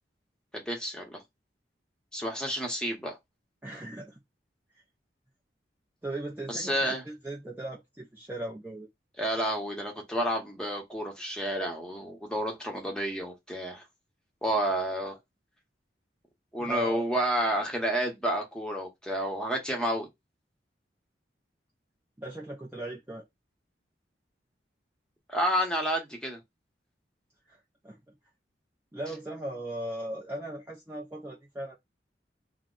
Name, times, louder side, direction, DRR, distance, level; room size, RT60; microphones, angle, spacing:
voice 1, 0.5-1.2 2.1-3.2 6.5-7.0 9.2-13.8 14.4-15.2 16.5-20.1 25.3-26.4, equal, 5° left, 0.8 m, -30 dB
voice 2, 3.6-4.2 6.0-8.9 16.6-17.0 22.2-23.2 27.5-27.6 27.8-28.2 28.9-31.8, right 1 dB, 10° right, 0.4 m, -38 dB
2.8 x 2.0 x 3.7 m
head